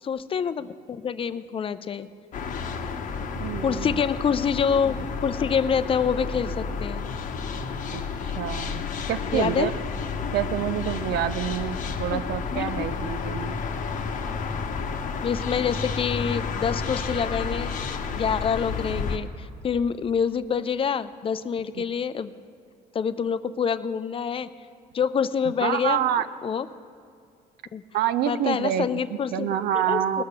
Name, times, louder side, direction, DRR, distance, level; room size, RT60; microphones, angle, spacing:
voice 1, 0.0-2.1 3.6-5.0 5.2-7.0 9.3-9.7 12.1-12.2 12.5-12.9 15.2-17.7 18.1-22.3 22.9-24.5 24.9-26.1 26.4-26.7 27.7-27.8 28.3-29.5 29.7-30.2, left 7 dB, 35° left, 14 dB, 0.5 m, -26 dB
sound 1, 2.3-19.2, left 5 dB, 50° left, 0.9 m, -31 dB
voice 2, 3.4-4.0 7.9-9.7 10.3-13.6 21.8-21.9 25.6-26.3 27.9-28.9 29.3-30.2, right 11 dB, 75° right, 13 dB, 0.5 m, -27 dB
19.0 x 6.6 x 5.8 m, 2.3 s
cardioid pair, 110°, 17 cm